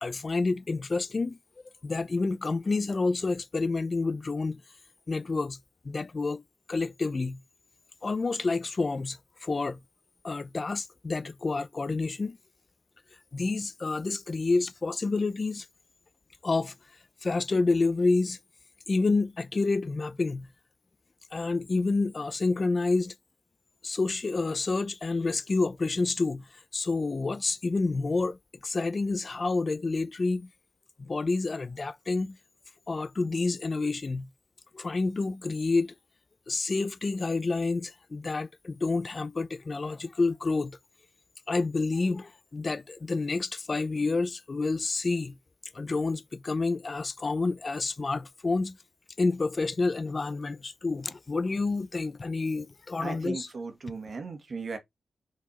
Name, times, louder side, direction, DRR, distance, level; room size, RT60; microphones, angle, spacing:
voice 1, 0.0-1.4 1.8-4.6 5.1-5.6 5.8-6.4 6.7-7.4 8.0-9.8 10.2-12.4 13.3-15.7 16.4-16.7 17.2-18.4 18.9-20.5 21.3-23.1 23.8-26.4 26.7-28.4 28.6-30.5 31.0-32.4 32.9-34.3 34.7-35.9 36.5-40.8 41.5-45.4 45.7-48.8 49.2-53.5, left 3 dB, 40° left, 0.8 m, -28 dB
voice 2, 53.0-54.8, right 4 dB, 55° right, 1.7 m, -37 dB
5.6 x 5.4 x 4.2 m
wide cardioid pair, 120°, 0 cm